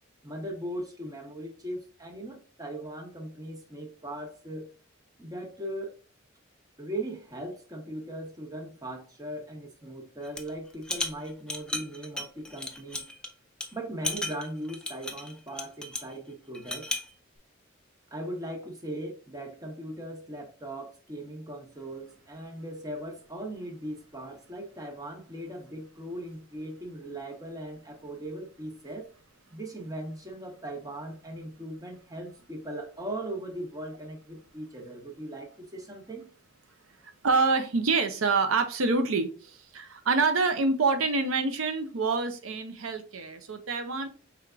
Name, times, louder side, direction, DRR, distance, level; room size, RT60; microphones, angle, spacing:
voice 1, 0.2-4.7 5.2-6.0 6.8-13.0 13.7-16.9 18.1-29.1 29.5-36.3, right 1 dB, 20° right, 0.9 m, -39 dB
sound 1, 10.2-10.5 10.8-13.3 13.6-13.7 14.0-16.1 16.5-17.1, left 2 dB, 5° left, 0.4 m, -34 dB
voice 2, 37.0-44.1, right 4 dB, 90° right, 0.6 m, -26 dB
4.6 x 3.5 x 2.4 m
head